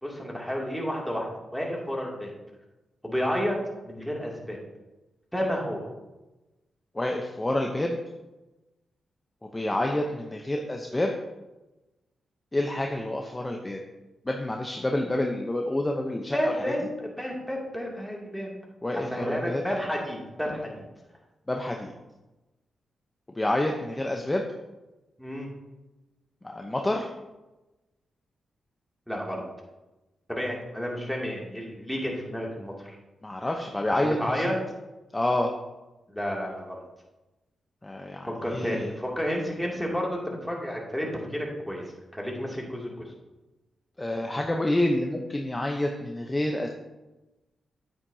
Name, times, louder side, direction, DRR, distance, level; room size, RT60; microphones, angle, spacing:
voice 1, 0.0-2.3 3.0-3.6 3.8-4.6 5.3-5.9 16.3-18.5 18.9-20.8 25.2-25.5 29.1-29.4 30.3-33.0 34.0-34.5 36.1-36.8 38.2-41.1 41.3-41.8 42.1-43.1, equal, ahead, -2 dB, 2.6 m, -31 dB
voice 2, 6.9-8.0 9.5-11.1 12.5-13.8 14.2-16.5 18.8-19.6 21.5-21.9 23.4-24.4 26.4-27.1 33.2-34.4 35.1-35.5 37.8-39.0 44.0-46.7, left 1 dB, 20° left, 2 dB, 0.8 m, -28 dB
9.0 x 8.9 x 2.8 m, 1.0 s
cardioid pair, 65°, 0 cm